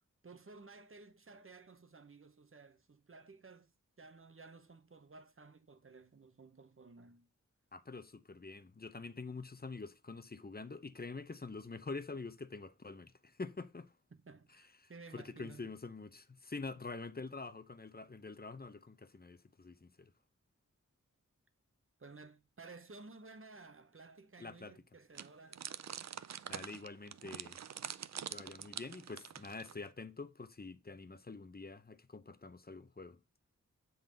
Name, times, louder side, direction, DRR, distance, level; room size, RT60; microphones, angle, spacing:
voice 1, 0.2-7.3 14.1-15.8 22.0-25.7, right 3 dB, 45° right, 0.9 m, -55 dB
voice 2, 7.7-13.9 15.1-20.1 24.4-24.7 26.5-27.6 28.3-33.2, left 3 dB, 30° left, 0.7 m, -46 dB
sound 1, 25.1-29.9, right 8 dB, 65° right, 0.4 m, -45 dB
7.3 x 4.0 x 5.2 m
wide cardioid pair, 50°, 30 cm